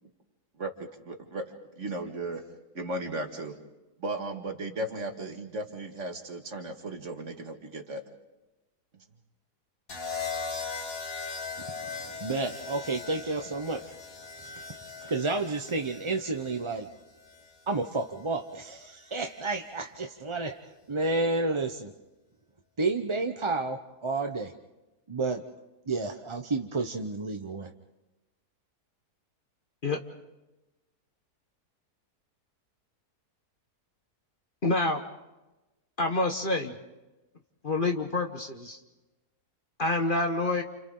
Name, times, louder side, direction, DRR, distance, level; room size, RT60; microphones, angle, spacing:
voice 1, 0.6-2.4 2.7-3.6 4.0-8.0, right 2 dB, 50° right, 3 dB, 2.2 m, -36 dB
sound 1, 9.9-18.0 19.2-19.6, left 4 dB, 60° left, 2.4 m, -39 dB
voice 2, 11.6-13.9 15.0-16.9 17.7-20.6 20.9-21.9 22.8-24.5 25.1-25.4 25.9-27.7, right 3 dB, 30° right, 5 dB, 0.5 m, -31 dB
voice 3, 34.6-35.0 36.0-36.7 37.6-38.8 39.8-40.6, left 2 dB, 35° left, 4 dB, 1.2 m, -27 dB
29.5 x 29.0 x 3.9 m, 1.1 s
omnidirectional pair, 1.7 m